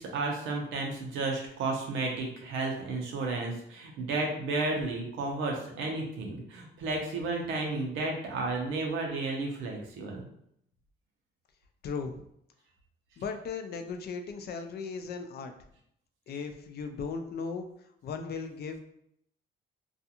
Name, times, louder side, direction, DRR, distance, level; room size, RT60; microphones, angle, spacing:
voice 1, 0.0-10.3, right 3 dB, 90° right, 1 dB, 0.7 m, -32 dB
voice 2, 11.8-12.2 13.2-15.5 16.3-17.7 18.0-18.8, left 5 dB, 55° left, 7 dB, 0.4 m, -37 dB
2.4 x 2.3 x 2.8 m, 0.72 s
cardioid pair, 90°, 20 cm